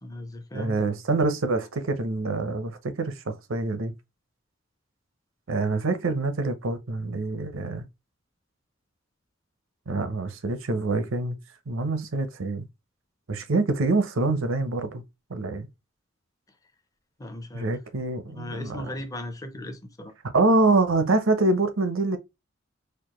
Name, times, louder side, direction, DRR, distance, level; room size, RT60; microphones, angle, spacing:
voice 1, 0.0-1.0 17.2-17.8 18.4-20.1, left 1 dB, 20° left, 0.6 m, -37 dB
voice 2, 0.5-3.9 5.5-7.9 9.9-11.4 11.7-12.7 13.3-15.0 15.3-15.7 17.5-18.9 20.3-22.2, right 3 dB, 80° right, 0.7 m, -25 dB
4.3 x 2.5 x 3.0 m
head